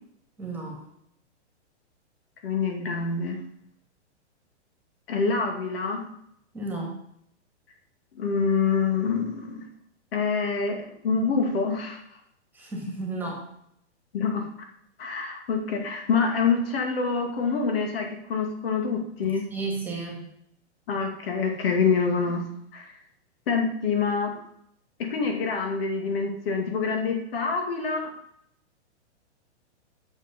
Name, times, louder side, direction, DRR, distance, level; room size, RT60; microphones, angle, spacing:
voice 1, 0.4-0.8 6.5-6.9 12.5-13.5 19.5-20.3, right 2 dB, 5° right, -1 dB, 2.1 m, -33 dB
voice 2, 2.4-3.4 5.1-6.0 8.1-9.6 10.1-12.0 14.1-14.5 15.0-19.4 20.9-22.4 22.7-22.9 23.5-24.4 25.0-28.1, left 5 dB, 55° left, 3 dB, 2.3 m, -26 dB
8.8 x 7.3 x 5.3 m, 0.72 s
hypercardioid pair, 150°, 35 cm